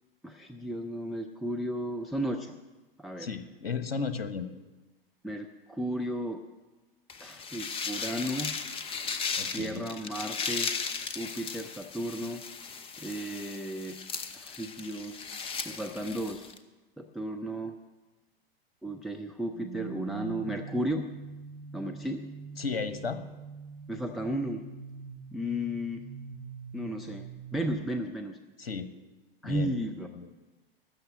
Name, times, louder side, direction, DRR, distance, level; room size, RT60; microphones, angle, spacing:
voice 1, 0.2-2.6 3.0-3.3 5.2-6.4 7.2-8.6 9.5-10.7 11.2-12.4 13.0-14.0 14.3-15.2 15.7-16.4 17.0-17.8 18.8-21.1 21.7-22.3 23.9-24.6 25.3-26.1 26.7-27.3 27.5-28.4 29.4-30.1, equal, ahead, 5 dB, 0.4 m, -34 dB
voice 2, 3.2-4.5 9.4-9.9 22.6-23.2 28.6-28.9 29.4-29.7 30.1-30.3, left 5 dB, 70° left, 10 dB, 1.2 m, -34 dB
sound 1, 7.1-16.6, left 5 dB, 20° left, 0.8 m, -36 dB
sound 2, 19.5-27.7, right 5 dB, 35° right, 4.1 m, -43 dB
13.0 x 6.6 x 9.2 m, 1.1 s
figure-of-eight pair, 100°, 30 cm